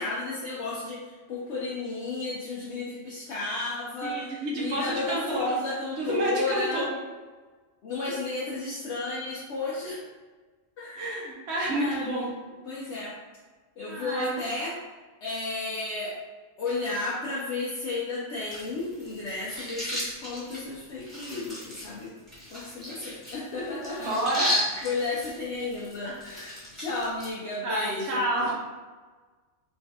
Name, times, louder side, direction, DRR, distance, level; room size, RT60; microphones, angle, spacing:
voice 1, 0.0-6.9 7.8-10.0 10.8-11.0 11.7-12.3 12.6-13.2 13.8-14.8 15.2-16.2 16.6-22.1 22.5-24.6 24.8-28.3, left 3 dB, 70° left, -6 dB, 0.9 m, -33 dB
voice 2, 4.0-5.5 6.0-6.9 10.9-12.3 13.9-14.3 24.0-24.7 27.6-28.5, right 1 dB, 65° right, -4 dB, 1.1 m, -29 dB
sound 1, 18.5-27.3, left 1 dB, ahead, 1.4 m, -35 dB
3.1 x 3.1 x 2.8 m, 1.3 s
omnidirectional pair, 1.3 m